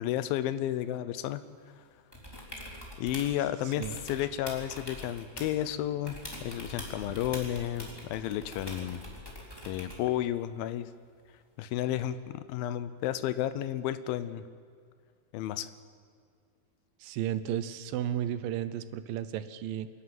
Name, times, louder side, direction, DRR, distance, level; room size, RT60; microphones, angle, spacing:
voice 1, 0.0-1.4 3.0-9.0 9.6-10.9 11.6-14.4 15.3-15.7, left 12 dB, 85° left, 12 dB, 2.6 m, -32 dB
sound 1, 2.1-3.4 3.7-5.7 6.1-10.1 12.0-12.1, left 1 dB, 5° left, 3.5 m, -44 dB
voice 2, 3.6-4.0 17.0-19.9, right 11 dB, 80° right, 13 dB, 2.5 m, -33 dB
27.5 x 11.5 x 9.4 m, 2.2 s
omnidirectional pair, 4.1 m